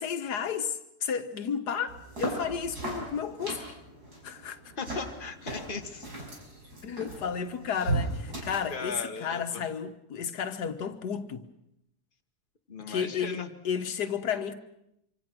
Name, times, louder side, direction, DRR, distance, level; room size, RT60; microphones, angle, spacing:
voice 1, 0.0-3.6 4.2-4.6 6.8-11.4 12.9-14.5, left 7 dB, 85° left, 1.8 m, -32 dB
sound 1, 1.9-8.9, right 2 dB, 80° right, 6.4 m, -37 dB
voice 2, 4.8-6.1 8.7-9.6 12.7-13.5, left 4 dB, 35° left, 1.8 m, -37 dB
26.0 x 25.5 x 6.2 m
omnidirectional pair, 1.7 m